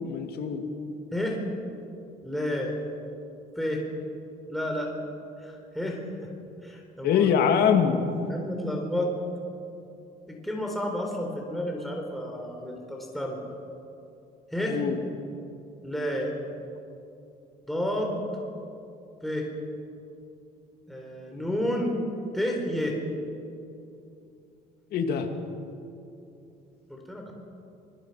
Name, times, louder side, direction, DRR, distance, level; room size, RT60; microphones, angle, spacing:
voice 1, 0.0-0.6 7.0-8.0 14.7-15.0 24.9-25.3, left 7 dB, 70° left, 5 dB, 2.5 m, -23 dB
voice 2, 2.2-2.7 3.6-3.8 4.5-4.9 5.4-6.3 6.6-7.3 8.3-9.1 10.3-13.4 14.5-14.8 15.8-16.4 17.7-18.3 19.2-19.5 20.9-22.0 22.3-23.0 26.9-27.3, left 1 dB, ahead, 0 dB, 4.1 m, -30 dB
26.5 x 21.5 x 5.8 m, 2.7 s
cardioid pair, 110°, 17 cm